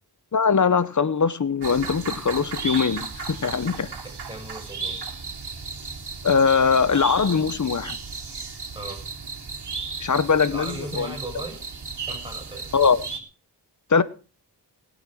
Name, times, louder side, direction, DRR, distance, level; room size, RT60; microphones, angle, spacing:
voice 1, 0.3-3.9 6.2-8.0 10.0-11.1 12.7-13.1 13.9-14.0, left 5 dB, 45° left, 1.0 m, -21 dB
sound 1, 1.6-13.2, right 4 dB, 70° right, 3.4 m, -35 dB
voice 2, 4.2-5.0 8.7-9.0 10.4-11.6 12.0-12.6, right 1 dB, 10° right, 6.5 m, -37 dB
20.5 x 8.2 x 6.3 m
wide cardioid pair, 105°, 41 cm